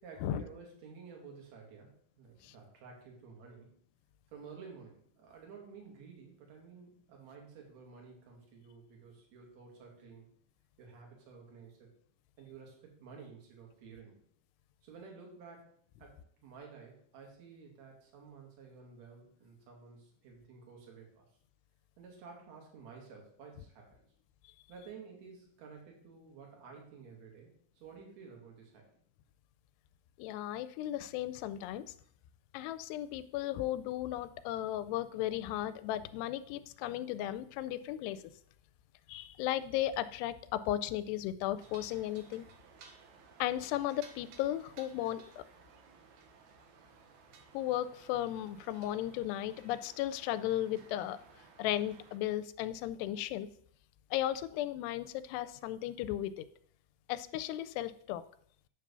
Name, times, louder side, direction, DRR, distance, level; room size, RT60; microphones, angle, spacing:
voice 1, 0.0-3.8 4.3-10.3 10.8-11.9 12.4-14.2 14.8-15.7 16.0-16.1 16.4-21.3 22.0-24.0 24.7-28.9, right 5 dB, 50° right, 0 dB, 2.9 m, -52 dB
voice 2, 30.2-31.8 32.5-38.2 39.1-42.5 43.4-45.4 47.5-51.2 51.6-53.5 54.1-56.5 57.1-58.2, left 13 dB, 90° left, 13 dB, 2.6 m, -35 dB
Ambiente - campo con bandera tranquilo, 41.6-52.2, right 6 dB, 85° right, 1.6 m, -58 dB
9.9 x 3.8 x 6.7 m, 0.63 s
omnidirectional pair, 4.7 m